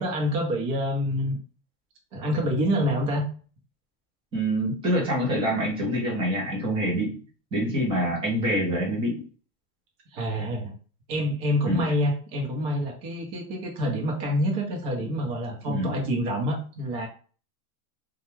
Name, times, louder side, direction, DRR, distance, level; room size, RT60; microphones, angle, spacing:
voice 1, 0.0-1.4 2.1-3.3 10.1-10.7 11.1-17.1, equal, 35° right, 0 dB, 0.8 m, -27 dB
voice 2, 4.3-7.2 7.5-9.2 11.6-11.8 15.7-15.9, equal, 10° right, -4 dB, 0.5 m, -26 dB
2.3 x 2.2 x 3.1 m, 0.39 s
supercardioid pair, 155°, 44 cm